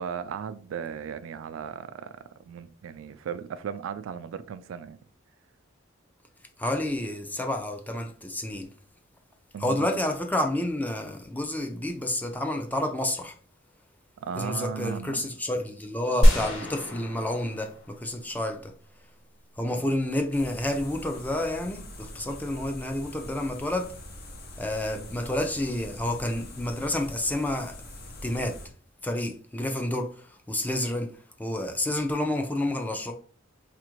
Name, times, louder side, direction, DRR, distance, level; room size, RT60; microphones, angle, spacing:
voice 1, 0.0-5.0 9.5-10.0 14.2-15.3, right 7 dB, 85° right, 0.3 m, -36 dB
voice 2, 6.6-8.7 9.6-13.4 14.4-18.7 19.6-23.9 24.6-27.8 28.2-28.6 29.0-33.1, left 1 dB, 10° left, 0.4 m, -29 dB
sound 1, 16.2-18.5, equal, 80° left, 1.1 m, -24 dB
sound 2, 20.3-28.7, left 1 dB, 50° left, 0.7 m, -44 dB
4.2 x 2.5 x 3.0 m
head